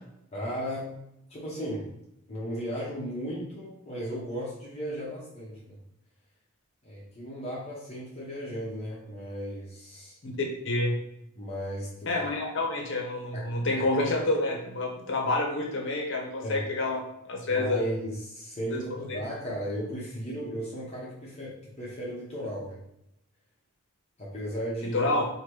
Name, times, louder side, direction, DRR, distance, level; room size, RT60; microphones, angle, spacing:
voice 1, 0.3-0.9 1.3-1.9 2.3-5.8 6.8-10.2 11.4-12.1 13.3-13.8 16.4-16.6 17.4-22.8 24.2-25.0, equal, 30° left, -5 dB, 1.0 m, -35 dB
voice 2, 10.6-11.0 12.1-17.0 17.3-17.8 18.7-18.8 19.1-19.2 24.9-25.2, left 2 dB, 60° left, 1 dB, 1.0 m, -28 dB
4.8 x 2.9 x 3.1 m, 0.80 s
head